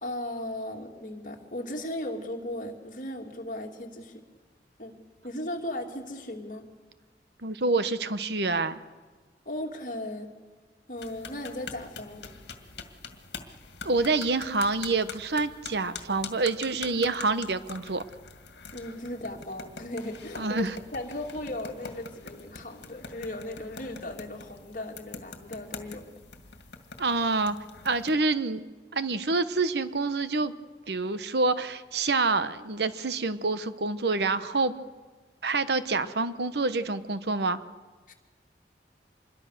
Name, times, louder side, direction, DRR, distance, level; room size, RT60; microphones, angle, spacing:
voice 1, 0.0-4.2 4.8-4.9 5.2-6.6 9.4-10.3 10.9-12.4 18.7-20.6 20.9-26.2 38.1-38.2, left 1 dB, 45° left, 2 dB, 2.8 m, -37 dB
voice 2, 7.4-8.8 13.8-18.0 20.4-20.7 27.0-27.6 27.8-28.6 28.9-30.5 30.9-34.7 35.4-37.6, right 3 dB, 70° right, 13 dB, 1.0 m, -27 dB
sound 1, 11.0-28.1, left 5 dB, 75° left, 2.1 m, -44 dB
26.5 x 22.0 x 6.7 m, 1.4 s
head